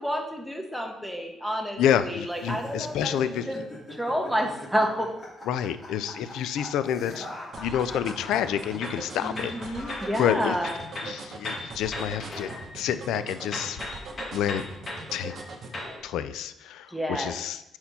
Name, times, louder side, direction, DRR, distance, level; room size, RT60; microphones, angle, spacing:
voice 1, 0.0-3.6 4.0-5.1 9.2-10.8 16.9-17.3, equal, ahead, 2 dB, 1.1 m, -29 dB
voice 2, 1.8-3.5 5.5-7.3 7.6-10.6 11.0-13.8 14.3-14.6 15.1-15.3 16.0-17.8, left 9 dB, 85° left, 13 dB, 0.3 m, -28 dB
sound 1, 2.3-10.8, left 1 dB, 25° left, 2.2 m, -43 dB
sound 2, 7.5-15.8, right 4 dB, 60° right, 0.8 m, -41 dB
sound 3, 8.5-10.2 10.5-13.2 13.5-16.0, left 2 dB, 45° left, 1.5 m, -38 dB
4.4 x 4.3 x 5.4 m, 0.88 s
cardioid pair, 90°, 0 cm